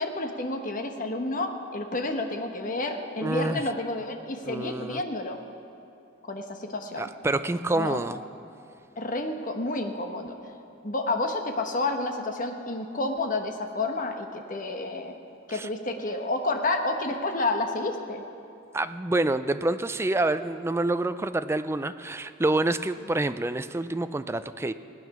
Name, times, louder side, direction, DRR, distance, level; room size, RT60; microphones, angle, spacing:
voice 1, 0.0-5.4 6.2-7.1 7.7-8.0 9.0-10.4 10.8-15.1 15.5-18.2, left 2 dB, 40° left, 4 dB, 1.1 m, -30 dB
voice 2, 3.2-3.6 4.4-5.0 7.0-8.2 15.5-15.7 18.7-24.7, right 2 dB, 15° right, 11 dB, 0.3 m, -27 dB
17.5 x 9.2 x 6.0 m, 2.6 s
head